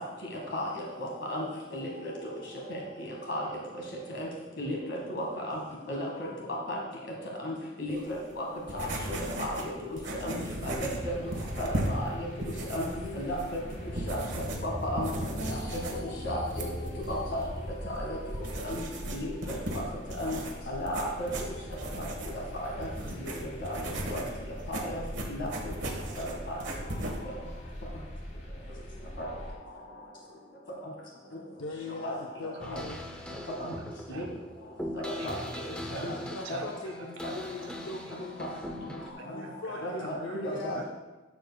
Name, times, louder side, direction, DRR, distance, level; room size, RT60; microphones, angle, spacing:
voice 1, 0.5-1.4 1.7-2.1 2.7-2.8 3.3-3.4 4.1-4.3 4.6-5.6 5.9-6.3 6.7-6.8 7.4-8.4 8.7-8.9 9.4-9.7 10.2-10.4 10.6-11.2 11.6-12.3 12.7-12.9 13.1-13.6 14.1-14.2 14.6-15.1 15.4-16.7 17.1-17.4 17.9-18.2 18.6-18.8 19.1-19.8 20.2-20.4 20.7-21.3 22.0-22.1 22.6-22.9 23.6-23.8 24.1-24.2 24.7-25.0 25.3-25.5 26.2-26.6 29.2-29.3 32.0-32.1 32.7-32.8 33.6-33.7 34.1-34.2 35.2-35.4 36.0-36.1 36.5-36.6 39.8-40.1 40.4-40.8, left 1 dB, 70° left, -2 dB, 1.3 m, -34 dB
sound 1, 7.9-27.2, right 1 dB, 70° right, 1.3 m, -37 dB
sound 2, 10.5-29.6, equal, 35° left, 1.2 m, -42 dB
voice 2, 31.6-33.0 35.8-38.5 39.2-40.8, left 3 dB, 90° left, 1 dB, 0.6 m, -40 dB
sound 3, 32.6-39.1, left 1 dB, 5° left, 0.6 m, -41 dB
voice 3, 33.0-33.4 33.8-34.3 35.2-35.6 35.9-37.4 38.0-38.1 38.8-40.4 40.7-40.8, right 3 dB, 90° right, 2 dB, 0.6 m, -47 dB
11.5 x 7.0 x 2.2 m, 1.2 s
head